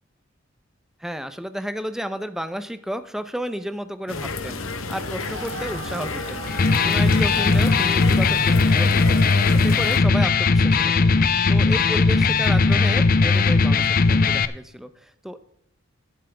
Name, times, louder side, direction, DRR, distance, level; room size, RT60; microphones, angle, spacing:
voice 1, 1.0-11.1 11.5-15.4, equal, ahead, 11 dB, 0.7 m, -32 dB
sound 1, 4.1-10.0, left 4 dB, 85° left, 1.1 m, -31 dB
sound 2, 4.9-9.8, right 2 dB, 60° right, 1.7 m, -37 dB
Electric guitar, 6.5-14.5, left 4 dB, 45° left, 0.6 m, -18 dB
11.5 x 11.5 x 3.5 m, 0.73 s
head